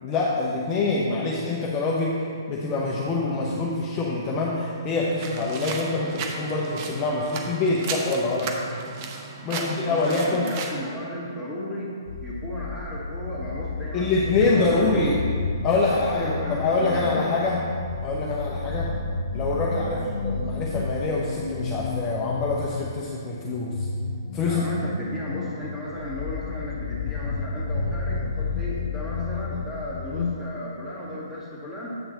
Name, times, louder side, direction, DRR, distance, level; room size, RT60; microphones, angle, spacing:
voice 1, 0.0-2.1 2.5-8.5 9.4-10.5 13.9-15.2 15.6-17.6 18.0-18.9 19.3-23.9 24.3-24.6, left 3 dB, 25° left, -4 dB, 0.8 m, -25 dB
sound 1, 5.2-10.7, right 4 dB, 35° right, 0.8 m, -35 dB
voice 2, 9.4-11.9 12.2-15.1 15.9-17.3 19.8-20.0 24.4-31.9, left 1 dB, 5° right, -8 dB, 2.0 m, -35 dB
sound 2, 12.1-30.4, left 4 dB, 60° left, 0.4 m, -31 dB
8.0 x 6.0 x 4.0 m, 2.3 s
figure-of-eight pair, 130°, 2 cm